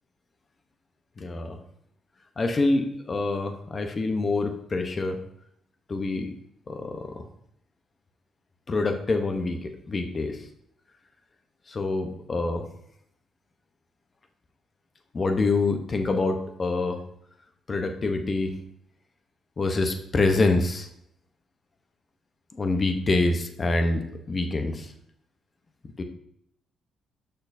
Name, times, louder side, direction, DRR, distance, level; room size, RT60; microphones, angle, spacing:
voice 1, 1.2-1.6 2.4-5.2 5.9-6.3 6.7-7.3 8.7-10.4 11.7-12.7 15.1-17.0 17.7-18.6 19.6-20.9 22.5-24.9 26.0-26.1, left 3 dB, 35° left, 6 dB, 0.9 m, -26 dB
6.6 x 6.0 x 2.7 m, 0.71 s
cardioid pair, 90°, 0 cm